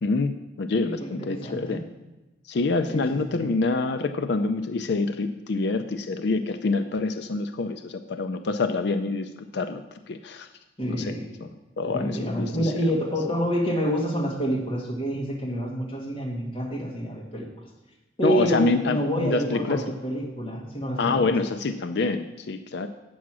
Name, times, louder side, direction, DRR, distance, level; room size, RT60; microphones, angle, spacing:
voice 1, 0.0-1.8 2.5-9.8 10.1-10.5 10.9-11.1 11.4-11.5 11.8-12.5 18.2-19.8 21.0-22.9, left 3 dB, 65° left, 8 dB, 0.5 m, -26 dB
voice 2, 0.8-1.8 2.9-3.5 10.8-11.3 11.8-17.5 18.2-21.4, equal, 30° left, -2 dB, 1.7 m, -28 dB
8.3 x 6.3 x 6.1 m, 1.1 s
head